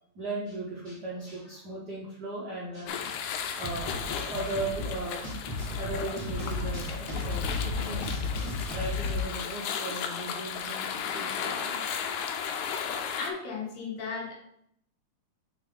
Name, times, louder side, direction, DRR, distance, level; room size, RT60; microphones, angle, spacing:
voice 1, 0.1-3.2 3.6-5.2 5.8-8.3 8.7-10.8 11.1-11.8, right 2 dB, 65° right, -6 dB, 1.0 m, -37 dB
sound 1, 2.9-13.3, left 7 dB, 85° left, 2.0 m, -35 dB
sound 2, 3.6-9.2, left 3 dB, 15° right, 0.7 m, -34 dB
voice 2, 13.2-14.4, left 5 dB, 65° left, -1 dB, 2.4 m, -35 dB
6.1 x 4.0 x 3.8 m, 0.70 s
omnidirectional pair, 3.4 m